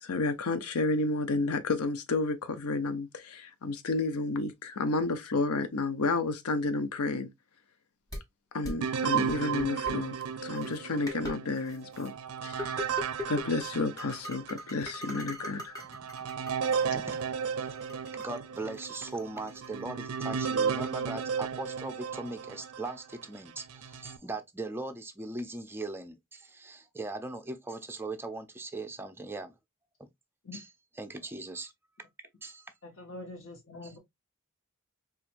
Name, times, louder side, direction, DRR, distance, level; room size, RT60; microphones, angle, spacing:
voice 1, 0.0-7.3 8.5-10.1 10.4-12.1 12.4-12.8 13.3-15.7, left 3 dB, 80° left, 0.6 m, -31 dB
sound 1, 8.1-8.2 8.6-8.7 9.3-9.9 10.6-10.7 11.1-11.4 11.7-12.1 12.6-13.7 14.0-16.8 17.1-19.7, left 1 dB, 15° left, 1.1 m, -40 dB
sound 2, 8.8-14.6 15.1-15.2 15.8-23.0 23.6-24.2, right 6 dB, 70° right, 0.4 m, -34 dB
voice 2, 16.8-17.7 18.1-29.5 30.0-30.1 30.5-30.6 31.0-31.7 32.4-32.7, right 2 dB, 10° right, 0.5 m, -39 dB
voice 3, 32.8-34.0, left 2 dB, 65° left, 1.1 m, -44 dB
4.3 x 2.5 x 2.5 m
head